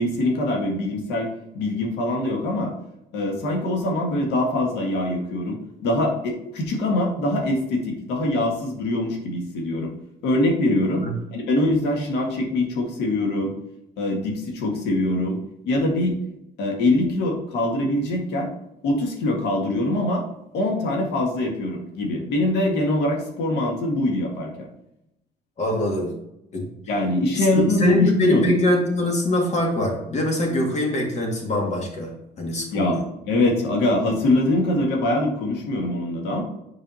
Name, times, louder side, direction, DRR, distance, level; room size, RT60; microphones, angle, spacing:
voice 1, 0.0-2.7 3.1-9.9 10.2-11.1 11.3-13.5 14.0-15.4 15.7-16.2 16.6-18.5 18.8-20.2 20.5-24.7 26.9-28.6 32.7-33.0 33.3-36.4, left 1 dB, 85° left, 1 dB, 1.8 m, -23 dB
voice 2, 25.6-26.1 26.5-26.7 27.4-32.1 32.4-33.0, left 1 dB, 40° left, 1 dB, 2.1 m, -23 dB
7.4 x 5.0 x 2.9 m, 0.85 s
cardioid pair, 110°, 17 cm